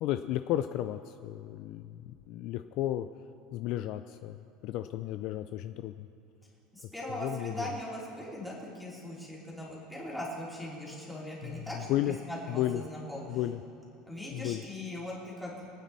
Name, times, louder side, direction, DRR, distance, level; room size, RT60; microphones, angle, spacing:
voice 1, 0.0-3.1 3.5-6.1 7.1-7.7 11.4-12.1 12.5-12.8 13.3-13.6 14.3-14.6, left 13 dB, 50° left, 10 dB, 0.4 m, -33 dB
voice 2, 6.7-13.4 14.1-15.6, left 1 dB, ahead, -6 dB, 3.2 m, -40 dB
25.0 x 9.3 x 4.2 m, 2.5 s
cardioid pair, 160°, 0 cm